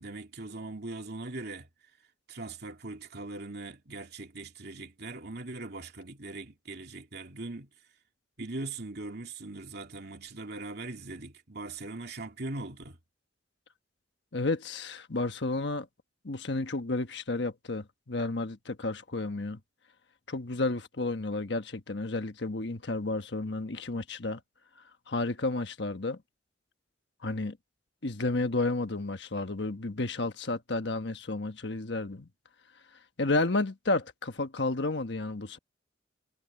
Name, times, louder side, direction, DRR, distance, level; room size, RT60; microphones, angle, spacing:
voice 1, 0.0-1.7 2.3-7.7 8.4-13.0, right 2 dB, 60° right, 2.7 m, -40 dB
voice 2, 14.3-15.9 16.2-19.6 20.3-24.4 25.1-26.2 27.2-27.6 28.0-32.3 33.2-35.6, left 2 dB, 65° left, 1.3 m, -31 dB
head